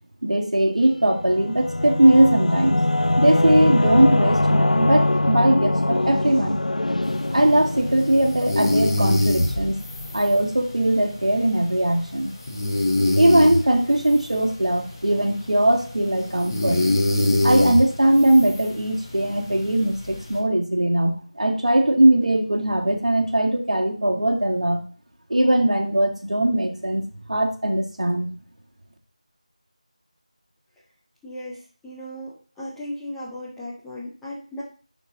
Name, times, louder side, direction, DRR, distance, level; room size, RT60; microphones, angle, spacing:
voice 1, 0.2-2.8 3.2-6.6 7.3-9.8 10.1-12.3 13.2-16.8 17.4-24.8 25.3-28.3, right 1 dB, 60° right, 2 dB, 1.9 m, -20 dB
Singing / Musical instrument, 1.0-10.2, left 1 dB, 80° left, 0.4 m, -23 dB
sound 1, 7.1-20.4, left 1 dB, 20° left, 1.3 m, -26 dB
voice 2, 31.2-34.6, left 1 dB, ahead, -10 dB, 0.3 m, -36 dB
11.0 x 4.2 x 3.7 m, 0.38 s
figure-of-eight pair, 170°, 4 cm